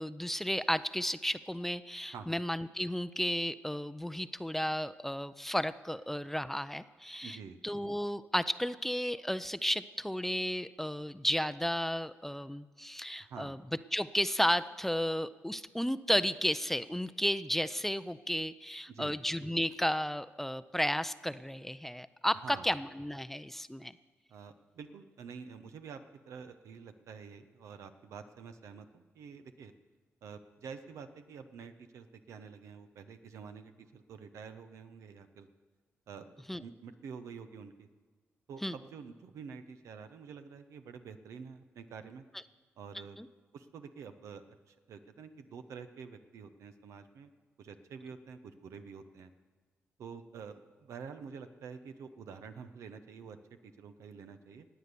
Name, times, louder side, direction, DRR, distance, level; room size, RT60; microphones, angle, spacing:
voice 1, 0.0-7.4 7.6-13.6 13.9-23.9 36.5-36.6 38.6-38.7 43.2-43.3, equal, 5° left, 14 dB, 0.5 m, -33 dB
voice 2, 7.2-7.6 13.2-13.5 18.9-19.2 22.4-22.7 24.3-29.7 30.2-35.5 36.1-37.9 38.5-42.2 42.8-43.2 43.5-47.3 47.6-49.3 50.0-54.7, right 6 dB, 85° right, 8 dB, 0.8 m, -48 dB
19.5 x 8.0 x 6.8 m, 1.4 s
cardioid pair, 65°, 5 cm